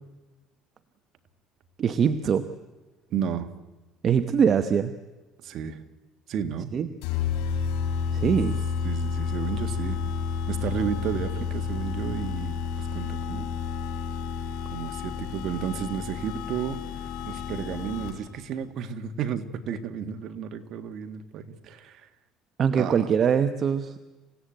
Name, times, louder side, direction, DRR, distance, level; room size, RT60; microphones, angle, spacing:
voice 1, 1.8-2.5 4.0-4.9 6.7-6.9 8.1-8.6 22.6-24.0, right 7 dB, 40° right, 9 dB, 1.0 m, -23 dB
voice 2, 3.1-3.5 5.4-5.8 6.3-6.7 8.8-10.0 10.5-13.5 14.7-16.8 17.3-22.1 22.8-23.1, right 8 dB, 55° right, 8 dB, 1.8 m, -32 dB
sound 1, 7.0-18.4, left 6 dB, 90° left, 4.4 m, -30 dB
27.5 x 16.5 x 9.1 m, 1.2 s
cardioid pair, 125°, 0 cm